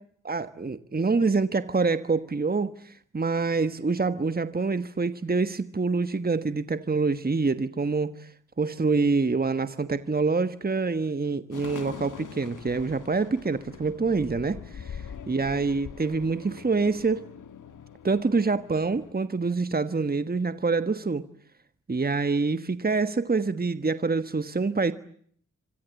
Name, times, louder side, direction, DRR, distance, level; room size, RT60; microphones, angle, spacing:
voice 1, 0.2-8.3 8.6-15.0 15.3-17.3 18.0-21.3 21.9-24.9, right 4 dB, 30° right, 1.4 m, -26 dB
sound 1, 11.5-19.1, left 7 dB, 80° left, 1.6 m, -43 dB
27.5 x 25.0 x 8.2 m
cardioid pair, 60°, 31 cm